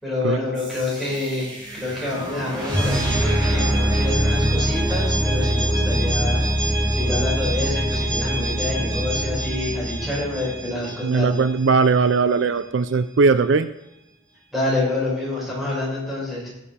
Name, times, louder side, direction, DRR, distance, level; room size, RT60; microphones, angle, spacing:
voice 1, 0.0-11.4 14.5-16.5, left 2 dB, ahead, -6 dB, 5.7 m, -27 dB
sound 1, 0.6-11.4, right 1 dB, 20° right, 3.7 m, -23 dB
voice 2, 11.0-13.7, right 4 dB, 60° right, 12 dB, 0.4 m, -19 dB
20.0 x 7.0 x 4.3 m, 0.90 s
head